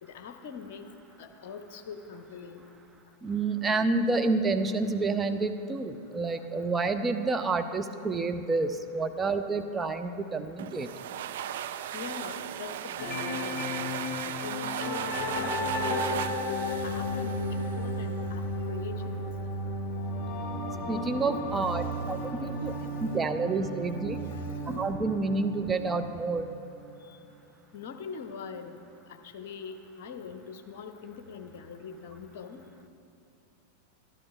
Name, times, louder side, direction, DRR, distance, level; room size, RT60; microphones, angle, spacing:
voice 1, 0.0-0.8 1.2-2.7 11.9-13.7 14.2-19.2 21.4-23.4 23.8-25.1 27.1-27.2 27.7-28.8 29.3-32.6, left 3 dB, 50° left, 7 dB, 0.8 m, -42 dB
voice 2, 3.2-10.9 20.9-22.7 23.0-24.2 24.7-26.5, right 3 dB, 15° right, 7 dB, 0.6 m, -29 dB
sound 1, 10.6-18.1, right 10 dB, 55° right, 0.4 m, -37 dB
sound 2, 13.0-26.9, left 1 dB, 35° left, 2.8 m, -34 dB
12.0 x 11.5 x 4.5 m, 2.7 s
figure-of-eight pair, 90°, 0 cm